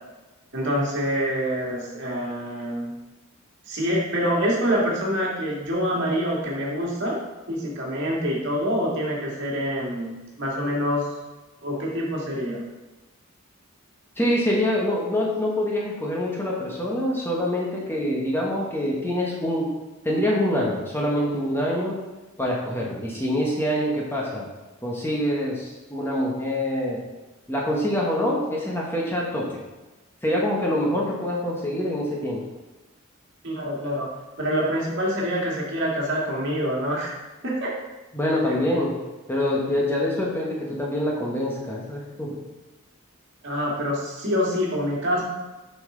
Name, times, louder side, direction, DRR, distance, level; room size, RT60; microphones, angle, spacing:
voice 1, 0.5-2.9 3.7-7.2 7.5-11.1 11.6-12.6 33.4-34.1 34.4-37.2 37.4-37.7 38.4-38.6 43.4-45.2, equal, 55° right, -3 dB, 1.9 m, -26 dB
voice 2, 14.2-19.7 20.0-22.0 22.4-24.5 24.8-27.0 27.5-29.6 30.2-32.4 38.1-38.9 39.3-42.3, left 1 dB, 10° left, -3 dB, 1.1 m, -25 dB
6.9 x 5.4 x 3.8 m, 1.1 s
head